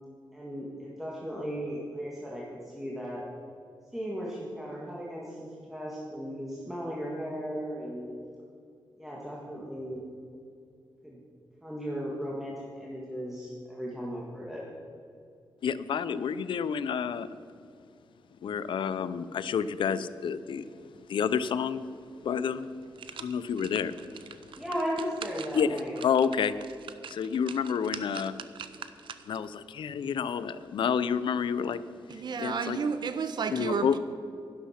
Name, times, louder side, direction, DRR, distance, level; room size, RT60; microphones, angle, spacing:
voice 1, 0.3-3.2 3.9-8.1 9.0-10.0 11.0-11.2 11.6-14.6 24.6-26.0, equal, 5° right, -5 dB, 1.7 m, -36 dB
voice 2, 15.6-17.3 18.4-20.6 21.1-21.8 22.2-22.7 23.2-24.2 25.5-26.5 27.1-28.3 29.3-31.8 32.4-32.8 33.5-34.0, left 7 dB, 80° left, 15 dB, 0.5 m, -29 dB
sound 1, 22.1-22.2 22.6-29.5 29.9-30.0, right 8 dB, 85° right, 0.6 m, -45 dB
voice 3, 32.1-34.0, right 5 dB, 60° right, 10 dB, 0.9 m, -31 dB
11.5 x 11.5 x 5.8 m, 2.4 s
wide cardioid pair, 140°, 8 cm